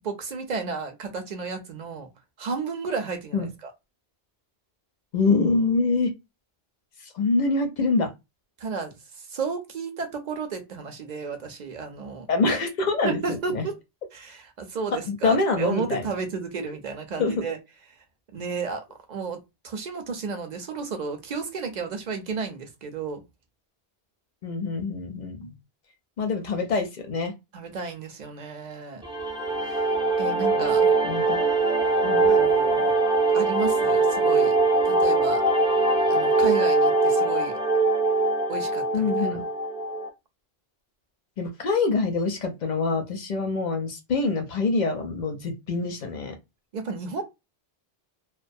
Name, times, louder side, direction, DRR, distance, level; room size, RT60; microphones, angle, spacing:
voice 1, 0.0-2.1 2.4-3.7 8.6-12.3 13.0-13.8 14.1-17.6 18.3-18.8 19.1-23.2 25.4-25.5 27.5-29.0 29.6-29.9 30.2-30.8 32.3-32.9 33.3-34.6 34.8-35.4 36.1-37.6 38.5-39.4 46.7-47.2, right 5 dB, 50° right, 0.6 m, -33 dB
voice 2, 5.1-6.1 7.0-8.1 12.3-13.6 15.1-16.0 17.2-17.3 24.4-25.5 26.2-27.3 30.6-30.7 31.0-31.5 32.0-32.4 38.9-39.4 41.4-46.4, left 3 dB, 55° left, 0.5 m, -25 dB
sound 1, 29.0-40.1, right 3 dB, 5° right, 0.4 m, -22 dB
2.3 x 2.2 x 2.5 m
omnidirectional pair, 1.1 m